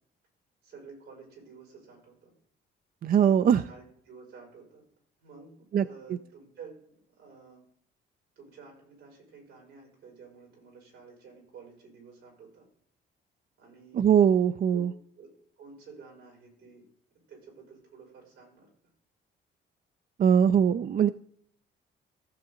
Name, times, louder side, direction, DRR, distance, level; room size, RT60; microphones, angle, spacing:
voice 1, 0.6-2.3 3.4-4.8 5.2-7.6 8.4-12.7 13.6-14.1 14.7-14.8 15.2-15.3 15.6-16.8 17.3-18.7, right 5 dB, 90° right, -1 dB, 5.5 m, -51 dB
voice 2, 3.0-3.6 5.7-5.8 13.9-14.9 20.2-21.1, right 8 dB, 45° right, 12 dB, 0.4 m, -21 dB
15.0 x 7.0 x 3.8 m, 0.63 s
cardioid pair, 90°, 20 cm